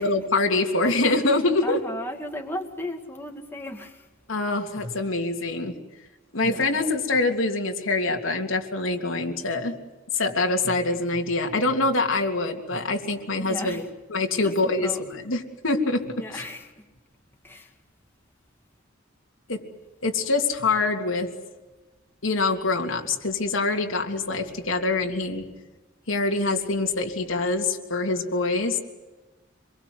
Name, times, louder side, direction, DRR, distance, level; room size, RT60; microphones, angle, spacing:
voice 1, 0.0-1.8 4.3-5.8 6.3-9.8 10.1-13.8 14.1-14.9 15.3-16.4 19.5-19.6 20.0-21.3 22.2-25.5 26.1-28.8, left 3 dB, 85° left, 2 dB, 3.2 m, -25 dB
voice 2, 1.6-4.1 6.4-6.8 13.4-13.9 14.4-15.0 16.2-16.9 17.4-17.8, left 1 dB, 10° left, 2 dB, 2.2 m, -35 dB
27.0 x 22.5 x 8.1 m, 1.2 s
head